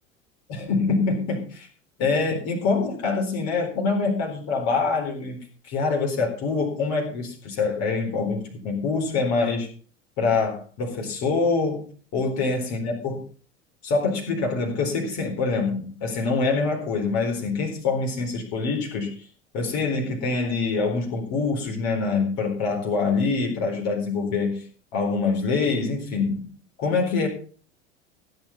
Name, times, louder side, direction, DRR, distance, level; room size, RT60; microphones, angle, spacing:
voice 1, 0.5-1.7 2.0-9.7 10.2-11.9 12.1-13.2 13.8-19.3 19.5-24.6 24.9-26.5 26.8-27.3, left 4 dB, 50° left, 1 dB, 4.3 m, -25 dB
15.5 x 7.9 x 5.5 m, 0.41 s
hypercardioid pair, 80°, 37 cm